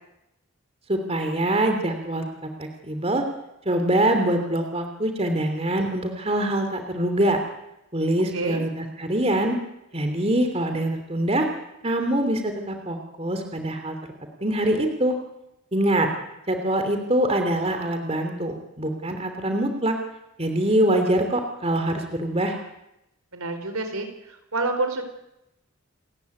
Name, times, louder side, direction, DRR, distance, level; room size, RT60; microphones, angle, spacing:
voice 1, 0.9-3.2 3.6-7.4 7.9-9.6 9.9-11.5 11.8-13.9 14.4-15.2 15.7-16.1 16.5-20.0 20.4-22.6, right 1 dB, 30° right, 5 dB, 3.0 m, -24 dB
voice 2, 8.3-8.7 23.3-25.0, right 2 dB, 85° right, 7 dB, 4.6 m, -28 dB
29.0 x 14.5 x 9.6 m, 0.88 s
head